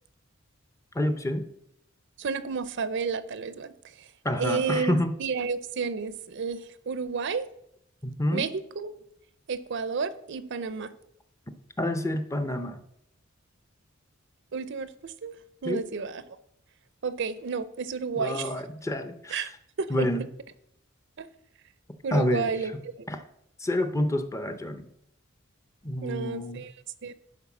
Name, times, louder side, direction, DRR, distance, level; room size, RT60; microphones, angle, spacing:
voice 1, 0.9-1.4 4.2-5.1 8.0-8.5 11.8-12.8 15.6-15.8 18.2-19.5 19.9-20.3 22.1-22.5 23.1-23.2 23.6-24.9 25.8-26.6, left 1 dB, 15° left, 9 dB, 0.6 m, -28 dB
voice 2, 2.2-3.7 4.0-4.1 4.4-7.5 8.3-8.9 9.5-10.9 14.5-15.4 15.6-16.2 17.0-18.5 19.3-19.5 19.8-20.1 21.2-21.3 22.0-22.9 26.0-26.7 27.0-27.1, right 5 dB, 60° right, 14 dB, 0.6 m, -31 dB
11.0 x 4.5 x 6.0 m, 0.75 s
head